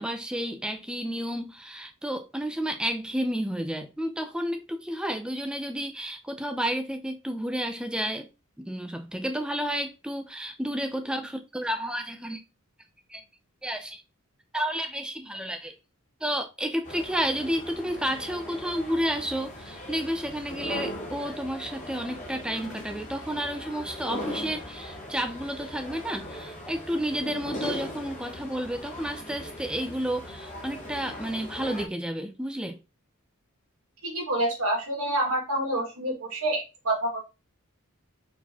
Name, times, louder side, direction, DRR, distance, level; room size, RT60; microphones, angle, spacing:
voice 1, 0.0-8.3 8.6-12.4 13.1-13.2 13.6-14.0 14.5-15.7 16.2-32.8, equal, 5° right, 0.5 m, -31 dB
sound 1, 16.8-31.8, left 1 dB, 35° left, 1.1 m, -39 dB
voice 2, 34.0-37.2, right 1 dB, 80° right, 2.0 m, -27 dB
4.4 x 4.2 x 2.9 m
head